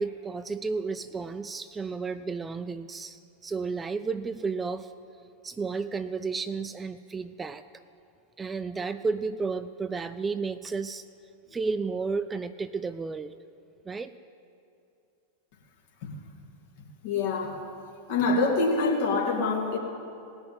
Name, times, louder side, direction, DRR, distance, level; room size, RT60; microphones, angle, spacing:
voice 1, 0.0-4.9 5.4-7.6 8.4-11.0 11.5-13.4 13.9-14.1, right 4 dB, 15° right, 12 dB, 0.4 m, -32 dB
voice 2, 17.0-17.6 18.1-19.8, left 3 dB, 50° left, -1 dB, 2.5 m, -25 dB
18.0 x 6.2 x 9.2 m, 2.5 s
figure-of-eight pair, 90°, 0 cm